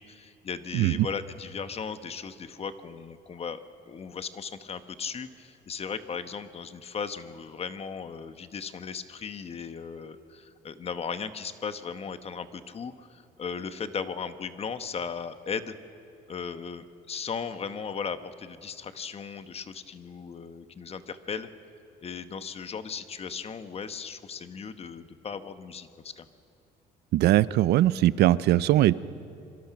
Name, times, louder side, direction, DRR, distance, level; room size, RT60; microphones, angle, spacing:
voice 1, 0.0-3.6 3.9-15.7 16.3-21.5 22.0-26.3, left 6 dB, 35° left, 10 dB, 1.2 m, -37 dB
voice 2, 27.1-28.9, right 14 dB, 75° right, 18 dB, 0.6 m, -21 dB
26.5 x 23.0 x 6.0 m, 2.6 s
cardioid pair, 110°, 17 cm